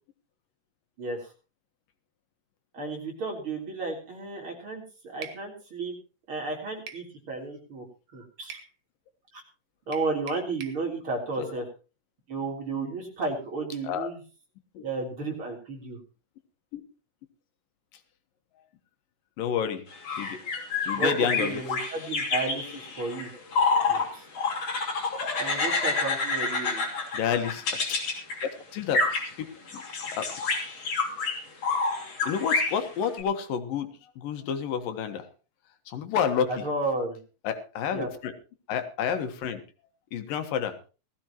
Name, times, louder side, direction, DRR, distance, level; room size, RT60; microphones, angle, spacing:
voice 1, 1.0-1.3 2.7-6.0 6.3-8.6 9.3-9.4 9.9-11.7 12.3-14.2 14.8-16.0 20.9-23.3 23.9-24.3 25.4-26.9 36.5-37.2 37.9-38.1, right 3 dB, 40° right, 0 dB, 4.2 m, -33 dB
sound 1, 5.2-5.4 6.9-7.1 8.5-8.7 9.9-10.8, right 7 dB, 80° right, 3.0 m, -43 dB
voice 2, 19.4-19.8 20.2-20.4 20.9-21.6 27.1-28.0 28.4-29.0 29.4-29.5 29.7-29.8 30.1-30.3 32.2-33.9 34.2-35.3 35.9-36.5 37.4-38.3 38.7-39.6 40.1-40.8, left 7 dB, 85° left, 8 dB, 3.1 m, -29 dB
sound 2, 19.9-24.1 24.3-28.5 28.9-29.3 29.7-33.2, left 3 dB, 50° left, 3.9 m, -28 dB
18.5 x 14.5 x 3.0 m, 0.34 s
omnidirectional pair, 3.8 m